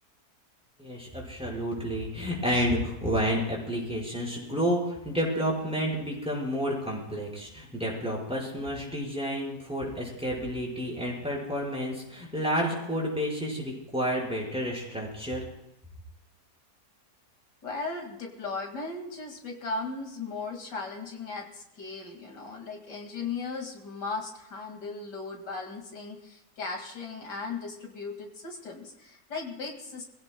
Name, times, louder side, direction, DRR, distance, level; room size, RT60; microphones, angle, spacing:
voice 1, 0.8-15.5, equal, 5° right, -4 dB, 5.3 m, -30 dB
voice 2, 17.6-30.0, left 4 dB, 80° left, 2 dB, 2.8 m, -37 dB
25.5 x 16.5 x 2.3 m, 0.91 s
omnidirectional pair, 1.8 m